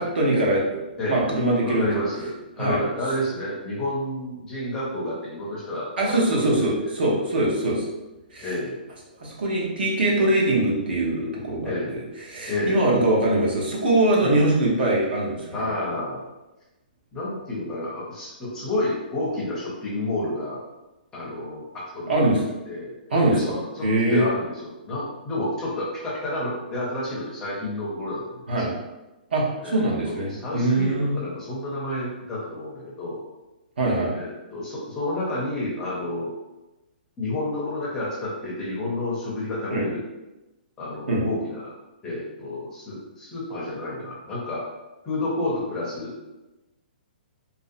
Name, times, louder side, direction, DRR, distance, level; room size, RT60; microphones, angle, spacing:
voice 1, 0.0-0.8 1.1-2.0 2.6-2.8 6.0-7.8 8.3-8.5 9.2-11.7 12.3-15.6 22.1-22.4 23.1-23.5 23.8-24.3 28.5-28.7 29.3-31.1 33.8-34.1 39.7-39.9 41.1-41.2, right 1 dB, 75° right, -4 dB, 0.8 m, -22 dB
voice 2, 1.6-2.3 2.6-6.5 6.8-6.9 8.4-8.8 11.6-12.0 12.5-12.8 14.2-14.5 15.5-16.2 17.1-20.6 21.1-22.4 22.7-22.9 23.3-28.6 29.6-33.2 34.1-36.3 37.2-40.0 40.8-41.7 42.0-44.6 45.0-46.1, left 1 dB, 10° left, -7 dB, 0.5 m, -30 dB
2.5 x 2.1 x 2.5 m, 1.0 s
hypercardioid pair, 170°, 5 cm